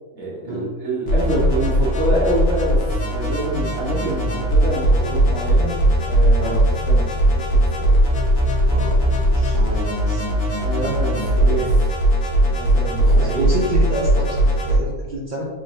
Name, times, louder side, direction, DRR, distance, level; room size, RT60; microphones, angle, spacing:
voice 1, 0.1-2.8 3.1-5.8 6.0-6.6 6.9-7.1 7.5-7.9 10.5-11.7 12.5-13.5, right 1 dB, 55° right, -6 dB, 1.4 m, -26 dB
sound 1, 1.1-14.8, right 1 dB, 60° left, 1.1 m, -19 dB
voice 2, 8.7-10.8 11.2-11.8 13.0-15.4, right 1 dB, 70° right, -3 dB, 0.4 m, -29 dB
3.7 x 3.0 x 2.6 m, 1.2 s
omnidirectional pair, 1.5 m